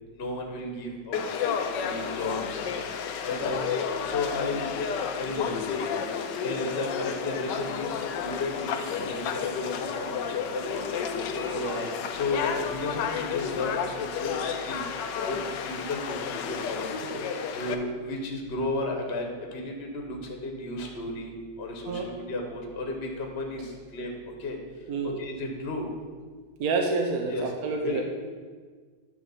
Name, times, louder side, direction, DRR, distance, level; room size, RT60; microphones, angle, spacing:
voice 1, 0.1-1.2 1.6-2.7 3.2-3.7 4.0-5.6 6.4-11.4 11.8-14.3 14.7-14.8 15.3-16.9 17.5-24.6 25.0-25.9 27.3-27.5 27.8-28.0, left 2 dB, 40° left, 1 dB, 1.2 m, -34 dB
Conversation / Crowd, 1.1-17.7, left 7 dB, 85° left, 1.3 m, -31 dB
voice 2, 11.5-12.0 17.0-17.2 21.8-22.1 24.9-25.2 26.6-28.0, right 3 dB, 65° right, 2 dB, 1.1 m, -29 dB
9.9 x 3.5 x 7.0 m, 1.5 s
omnidirectional pair, 1.9 m